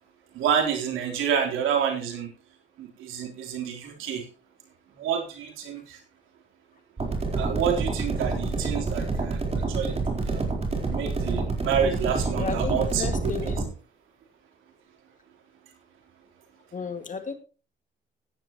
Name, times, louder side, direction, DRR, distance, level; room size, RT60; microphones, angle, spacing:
voice 1, 0.3-2.3 2.8-4.3 5.0-6.0 7.3-10.4 10.8-13.5, right 8 dB, 90° right, 3 dB, 3.8 m, -28 dB
sound 1, 7.0-13.7, right 3 dB, 30° right, 4.3 m, -28 dB
voice 2, 12.4-13.7 16.7-17.3, left 5 dB, 40° left, 7 dB, 2.1 m, -33 dB
16.0 x 10.5 x 3.1 m, 0.34 s
cardioid pair, 90°, 20 cm